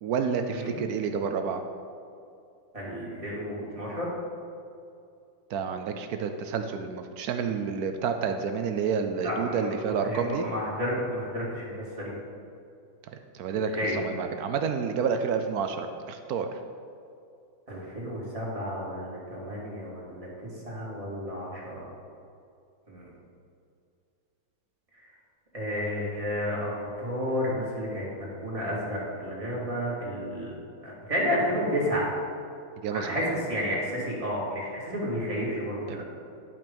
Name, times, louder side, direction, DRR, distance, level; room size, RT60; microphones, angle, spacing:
voice 1, 0.0-1.6 5.5-10.4 13.3-16.5 32.8-33.3 35.9-36.0, right 6 dB, 80° right, 6 dB, 0.8 m, -29 dB
voice 2, 2.7-4.1 9.2-9.7 10.0-12.1 13.7-14.0 17.7-20.3 20.7-21.8 22.9-23.0 25.5-30.5 30.8-32.1 32.9-36.0, equal, 15° right, -6 dB, 2.3 m, -31 dB
11.0 x 5.7 x 5.2 m, 2.5 s
omnidirectional pair, 2.2 m